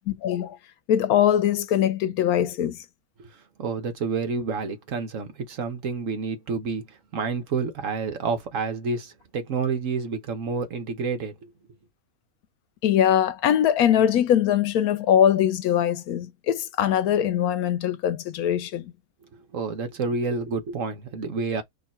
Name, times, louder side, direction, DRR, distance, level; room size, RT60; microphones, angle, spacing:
voice 1, 0.1-0.6 0.9-2.8 12.8-18.9, left 10 dB, 85° left, 1.1 m, -22 dB
voice 2, 3.6-6.8 7.1-11.5 19.3-21.6, right 4 dB, 60° right, 1.3 m, -29 dB
5.2 x 2.3 x 4.2 m
omnidirectional pair, 1.5 m